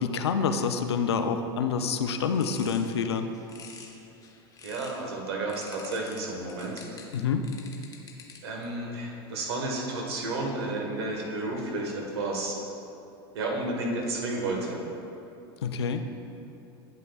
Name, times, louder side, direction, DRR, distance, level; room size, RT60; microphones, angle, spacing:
voice 1, 0.0-3.3 7.1-7.4 15.6-16.0, left 6 dB, 90° left, 8 dB, 0.5 m, -27 dB
sound 1, 2.0-5.1 5.5-8.6, left 5 dB, 25° left, 0.9 m, -48 dB
voice 2, 4.6-6.8 8.4-12.6 13.3-14.8, right 2 dB, 80° right, -1 dB, 1.5 m, -32 dB
9.2 x 8.0 x 2.4 m, 2.8 s
hypercardioid pair, 100°, 13 cm